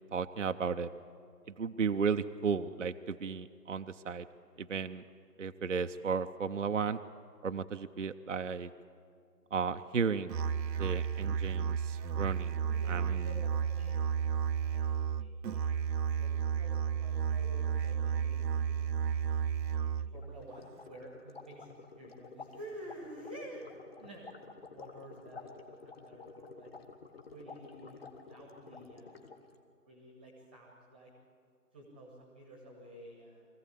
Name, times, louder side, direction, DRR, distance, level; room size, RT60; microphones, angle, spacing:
voice 1, 0.1-0.9 1.5-4.3 4.6-5.0 5.4-7.0 7.4-8.7 9.5-10.4 10.8-12.6 12.9-13.3, right 5 dB, 50° right, 8 dB, 0.5 m, -34 dB
Musical instrument, 10.3-20.3, right 7 dB, 90° right, 0.7 m, -32 dB
voice 2, 12.6-14.2 14.6-19.1 20.0-24.4 24.7-26.7 27.3-29.3 29.8-31.1 31.7-33.5, right 1 dB, 5° right, 0 dB, 1.1 m, -51 dB
sound 1, 20.1-29.6, left 4 dB, 35° left, 1.3 m, -51 dB
23.5 x 15.5 x 8.4 m, 2.3 s
figure-of-eight pair, 165°, 49 cm